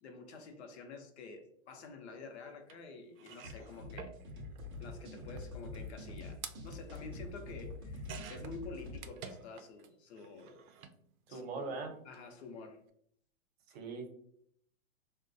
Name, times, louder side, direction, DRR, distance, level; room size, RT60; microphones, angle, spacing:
voice 1, 0.0-4.1 4.8-10.6 11.3-11.6 12.1-12.8, left 3 dB, 50° left, 5 dB, 0.7 m, -49 dB
sound 1, 2.7-2.8 3.2-9.9 10.2-11.0 12.0-12.2 12.4-12.5, right 7 dB, 80° right, 0.5 m, -51 dB
sound 2, 3.4-9.0, left 3 dB, 20° right, 0.4 m, -46 dB
voice 2, 11.3-11.9 13.7-14.1, right 4 dB, 50° right, 4 dB, 0.8 m, -40 dB
3.3 x 2.2 x 2.6 m, 0.66 s
hypercardioid pair, 150°, 41 cm